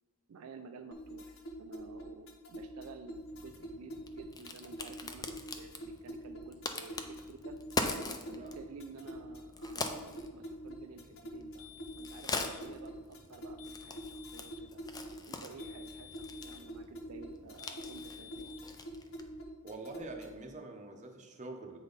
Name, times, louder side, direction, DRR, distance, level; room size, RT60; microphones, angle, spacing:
voice 1, 0.3-7.6 8.3-11.7 12.0-14.8 15.3-18.5, right 5 dB, 75° right, 5 dB, 0.4 m, -52 dB
sound 1, 0.9-20.5, equal, 60° left, 0.9 m, -46 dB
Crack, 3.3-19.4, left 3 dB, 15° left, 0.4 m, -43 dB
sound 2, 11.6-12.7 13.6-14.7 15.6-16.7 17.6-18.7, left 11 dB, 80° left, 0.5 m, -53 dB
voice 2, 19.6-21.8, right 2 dB, 35° right, 3 dB, 0.7 m, -45 dB
8.0 x 5.3 x 3.9 m, 1.3 s
head